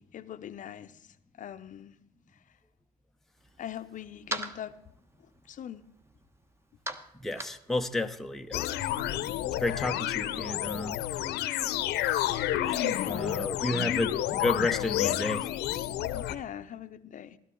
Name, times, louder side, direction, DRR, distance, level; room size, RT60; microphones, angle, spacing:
voice 1, 0.0-2.0 2.3-2.4 3.6-4.8 5.5-5.9 12.9-13.7 16.1-17.4, left 10 dB, 50° left, 11 dB, 0.7 m, -42 dB
sound 1, 3.4-9.1, right 2 dB, 15° right, 1.1 m, -43 dB
voice 2, 7.2-8.8 9.6-11.0 12.6-15.5, left 2 dB, ahead, 5 dB, 0.7 m, -32 dB
sound 2, 8.5-16.4, left 13 dB, 80° left, 0.9 m, -30 dB
15.5 x 12.5 x 3.7 m, 0.80 s
cardioid pair, 110°, 17 cm